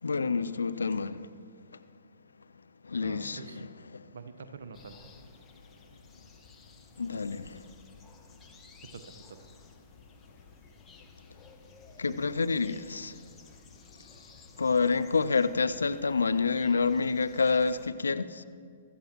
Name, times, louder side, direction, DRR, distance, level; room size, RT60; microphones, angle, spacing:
voice 1, 0.0-1.4 2.8-4.1 7.0-7.7 12.0-13.2 14.6-18.4, left 4 dB, 75° left, 0.5 m, -28 dB
voice 2, 3.0-3.6 4.1-5.1 8.9-9.4, right 5 dB, 65° right, 1.0 m, -46 dB
sound 1, 4.7-17.9, left 4 dB, 20° left, 1.3 m, -55 dB
23.0 x 13.5 x 3.0 m
figure-of-eight pair, 115°, 0 cm